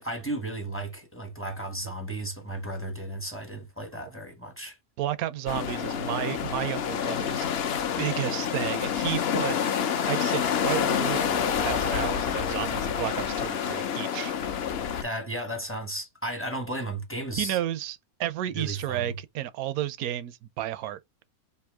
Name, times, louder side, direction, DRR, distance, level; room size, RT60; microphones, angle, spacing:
voice 1, 0.0-4.8 15.0-17.6 18.5-19.2, right 1 dB, 15° left, 0.5 m, -34 dB
voice 2, 5.0-7.5 8.0-9.6 10.0-14.3 17.4-21.0, right 12 dB, 75° right, 1.0 m, -32 dB
sound 1, 5.5-15.0, left 8 dB, 55° left, 0.7 m, -28 dB
3.5 x 2.6 x 4.6 m
omnidirectional pair, 1.6 m